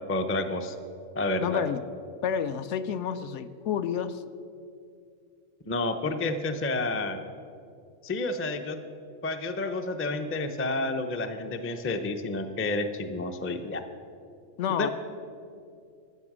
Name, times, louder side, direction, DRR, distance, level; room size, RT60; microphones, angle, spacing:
voice 1, 0.1-0.8 1.2-1.6 5.7-7.2 8.0-8.8 9.2-13.8 14.8-14.9, left 2 dB, 20° left, 7 dB, 0.3 m, -30 dB
voice 2, 1.4-1.8 2.2-4.2 14.6-14.9, left 8 dB, 70° left, 11 dB, 0.8 m, -29 dB
13.5 x 8.6 x 6.1 m, 2.4 s
omnidirectional pair, 1.3 m